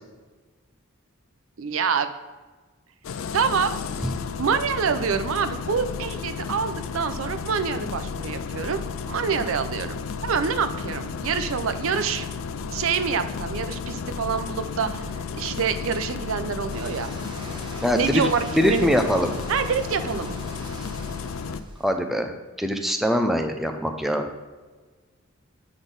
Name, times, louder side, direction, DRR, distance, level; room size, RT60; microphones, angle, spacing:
voice 1, 1.6-2.1 3.3-3.7 4.4-8.8 9.1-12.3 12.7-17.1 17.9-18.9 19.5-20.4, right 6 dB, 70° right, 10 dB, 0.5 m, -26 dB
Engine starting, 3.0-21.6, left 5 dB, 75° left, 0.4 m, -33 dB
sound 1, 16.7-21.9, right 2 dB, 25° right, 0.9 m, -41 dB
voice 2, 17.8-18.2 18.6-19.3 21.8-22.3 22.6-24.2, equal, ahead, 4 dB, 0.5 m, -22 dB
8.0 x 4.0 x 5.2 m, 1.3 s
head